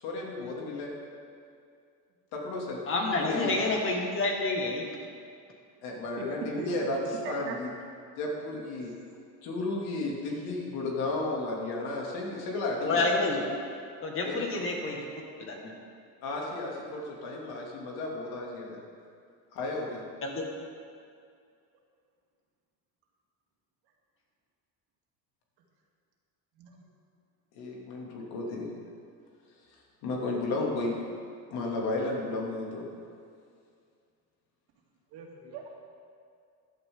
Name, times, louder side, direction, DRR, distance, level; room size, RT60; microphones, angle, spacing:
voice 1, 0.0-0.9 2.3-3.6 5.8-7.7 8.2-8.9 9.4-13.1 14.2-14.6 16.2-18.8 19.5-20.0 27.5-28.7 30.0-31.0 31.5-32.9, left 2 dB, 70° left, -2 dB, 2.8 m, -33 dB
voice 2, 2.9-4.8 12.8-13.4 14.0-15.0 15.5-15.7 20.2-20.4, left 3 dB, 30° left, 0 dB, 1.9 m, -28 dB
voice 3, 35.1-35.8, right 5 dB, 75° right, -1 dB, 2.4 m, -40 dB
15.0 x 12.0 x 3.8 m, 2.3 s
cardioid pair, 155°, 39 cm